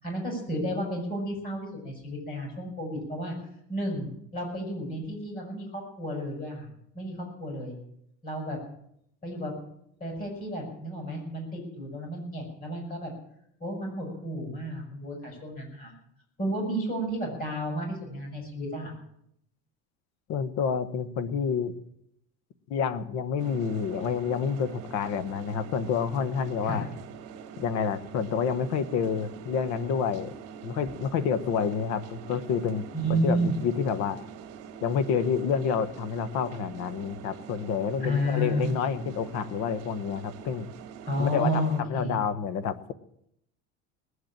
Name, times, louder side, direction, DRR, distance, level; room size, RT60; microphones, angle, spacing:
voice 1, 0.0-3.3 3.7-6.7 6.9-7.8 8.2-8.6 9.2-9.5 10.0-13.1 13.6-15.9 16.4-18.9 26.6-26.8 32.9-33.5 38.0-38.7 41.0-42.2, equal, 30° left, 1 dB, 6.5 m, -31 dB
voice 2, 20.3-21.7 22.7-26.9 27.6-30.3 30.6-34.2 34.8-40.7 41.2-42.9, left 6 dB, 60° left, 15 dB, 1.1 m, -29 dB
sound 1, 23.4-41.8, right 7 dB, 55° right, 2.1 m, -45 dB
19.5 x 8.1 x 8.8 m, 0.75 s
cardioid pair, 165°, 30 cm